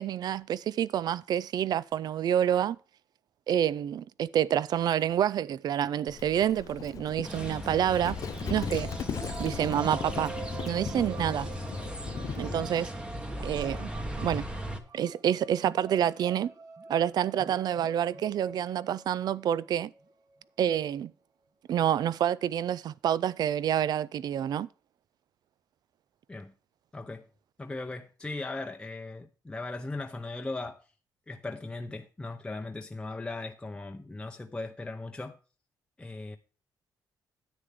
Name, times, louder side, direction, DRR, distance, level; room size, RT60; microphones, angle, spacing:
voice 1, 0.0-2.8 3.5-8.2 8.5-8.9 9.4-10.3 10.6-11.5 12.4-12.9 13.4-13.9 14.2-14.4 14.9-16.5 16.9-19.9 20.6-21.1 21.7-24.7, right 10 dB, 60° right, 0.4 m, -28 dB
Livestock farm animals working animals, 6.1-12.7, left 9 dB, 50° left, 0.4 m, -39 dB
sound 1, 7.2-14.8, equal, 15° right, 1.2 m, -38 dB
sound 2, 8.4-20.1, right 4 dB, 40° right, 1.3 m, -45 dB
voice 2, 26.9-27.3 27.6-30.8 31.3-35.4 36.0-36.4, left 2 dB, 10° left, 0.8 m, -38 dB
10.0 x 8.7 x 3.6 m
cardioid pair, 135°, 8 cm